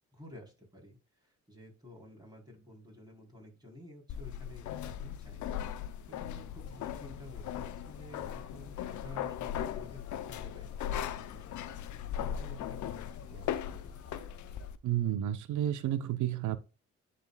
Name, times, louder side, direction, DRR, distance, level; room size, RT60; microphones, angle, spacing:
voice 1, 0.1-5.6 6.0-10.9 11.3-11.7 12.1-14.0, left 1 dB, 15° right, 3.8 m, -52 dB
sound 1, 4.1-14.8, left 10 dB, 80° left, 0.7 m, -38 dB
sound 2, 6.6-14.7, left 6 dB, 55° left, 1.4 m, -56 dB
voice 2, 14.8-16.6, right 11 dB, 80° right, 0.7 m, -31 dB
10.5 x 4.3 x 2.3 m
cardioid pair, 80°, 29 cm